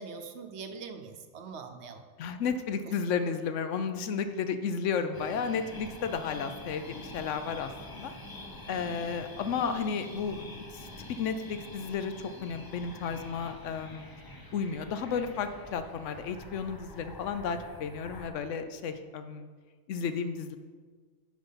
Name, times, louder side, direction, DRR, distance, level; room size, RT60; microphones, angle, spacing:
voice 1, 0.0-2.0, right 5 dB, 65° right, 7 dB, 0.9 m, -42 dB
voice 2, 2.2-8.1 8.7-12.1 12.4-14.1 14.5-19.5 19.9-20.6, left 6 dB, 75° left, 9 dB, 0.9 m, -33 dB
sound 1, 5.1-18.3, left 1 dB, 25° left, 0.6 m, -46 dB
7.3 x 5.2 x 5.6 m, 1.5 s
omnidirectional pair, 1.3 m